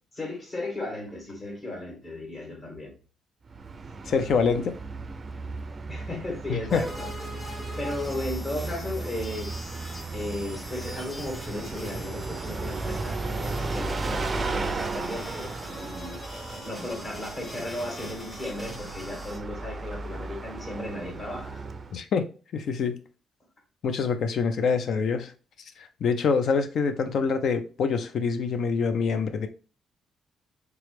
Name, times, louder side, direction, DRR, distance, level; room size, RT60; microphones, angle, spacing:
voice 1, 0.1-2.9 5.9-9.5 10.1-16.2 16.6-21.6, left 1 dB, 35° left, 1.8 m, -35 dB
Bus, 3.4-22.0, right 3 dB, 35° right, 0.4 m, -35 dB
voice 2, 4.1-4.7 6.5-6.8 21.9-22.2 22.5-23.0 23.8-25.3 25.8-29.5, left 5 dB, 65° left, 0.4 m, -25 dB
sound 1, 6.7-19.4, equal, 15° left, 1.4 m, -42 dB
3.4 x 3.0 x 3.2 m
cardioid pair, 90°, 0 cm